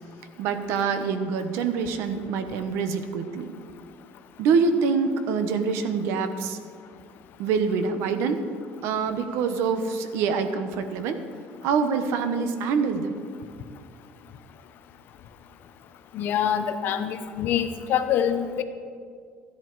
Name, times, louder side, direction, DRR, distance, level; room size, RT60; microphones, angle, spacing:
voice 1, 0.4-3.5 4.4-6.6 7.4-8.4 8.8-11.2 11.6-13.1, right 5 dB, 70° right, 9 dB, 1.0 m, -25 dB
voice 2, 16.1-18.6, left 9 dB, 45° left, 9 dB, 0.8 m, -25 dB
14.0 x 10.5 x 4.7 m, 2.1 s
cardioid pair, 175°, 5 cm